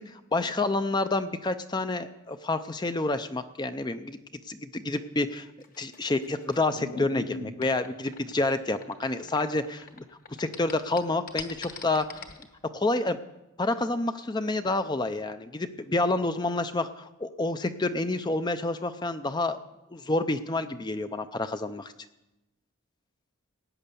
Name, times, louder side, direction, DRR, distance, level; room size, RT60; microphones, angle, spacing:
voice 1, 0.0-4.2 4.5-5.5 5.8-10.0 10.4-12.2 12.7-13.2 13.6-19.6 19.9-21.9, left 2 dB, 20° left, 10 dB, 0.5 m, -28 dB
sound 1, 5.6-10.0 10.3-12.4, left 3 dB, 40° left, 1.2 m, -40 dB
17.0 x 9.2 x 6.9 m, 0.97 s
head